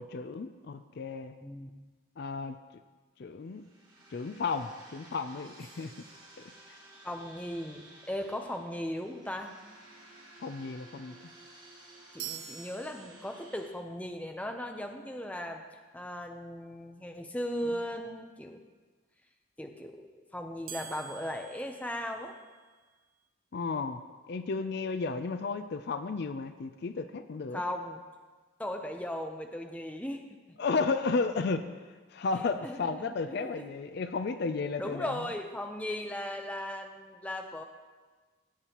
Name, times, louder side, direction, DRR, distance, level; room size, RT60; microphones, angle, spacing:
voice 1, 0.0-1.3 2.2-2.6 3.2-3.6 4.1-5.9 10.4-11.2 23.5-27.6 30.6-31.6 32.1-35.1, left 4 dB, 50° left, 10 dB, 0.4 m, -33 dB
sound 1, 3.4-13.7, right 2 dB, 25° right, 2.8 m, -55 dB
sound 2, 5.6-6.9 12.2-13.7 20.7-22.8, right 9 dB, 90° right, 1.0 m, -47 dB
voice 2, 7.0-9.5 12.1-15.6 15.9-18.6 19.6-22.3 27.5-28.0 28.6-30.3 32.6-33.7 34.8-37.6, left 1 dB, 5° left, 4 dB, 0.6 m, -37 dB
17.0 x 8.2 x 3.0 m, 1.3 s
head